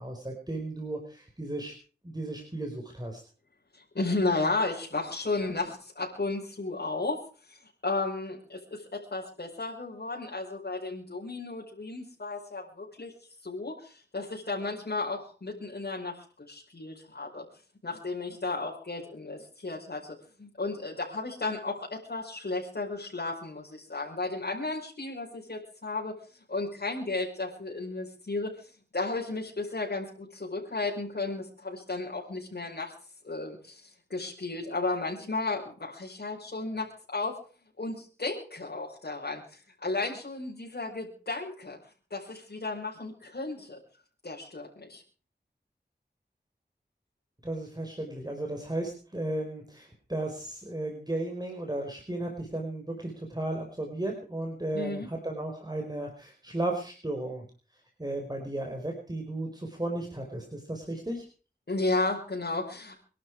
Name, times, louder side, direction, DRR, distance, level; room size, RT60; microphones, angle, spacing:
voice 1, 0.0-1.7 2.0-3.2 47.4-57.4 58.0-61.2, right 1 dB, 20° right, 2 dB, 5.0 m, -34 dB
voice 2, 3.7-7.2 7.5-13.1 13.4-17.5 17.8-26.2 26.5-32.9 33.2-37.4 37.8-41.8 42.1-43.8 44.2-45.0 54.7-55.1 61.7-63.0, left 3 dB, 65° left, -5 dB, 5.4 m, -34 dB
25.5 x 12.0 x 4.8 m, 0.40 s
wide cardioid pair, 55°, 18 cm